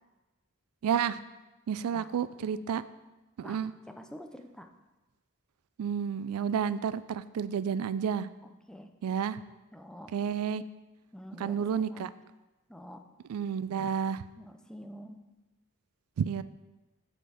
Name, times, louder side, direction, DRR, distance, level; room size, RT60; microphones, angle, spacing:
voice 1, 0.8-1.2 1.7-2.8 3.4-3.7 5.8-8.3 9.0-9.4 10.1-10.6 11.4-12.1 13.3-14.3 16.2-16.4, right 7 dB, 90° right, 15 dB, 0.3 m, -30 dB
voice 2, 3.9-4.7 8.4-8.9 9.7-10.1 11.1-12.1 12.7-13.1 14.4-15.2, equal, 5° left, 6 dB, 0.4 m, -47 dB
8.1 x 4.4 x 6.2 m, 1.1 s
head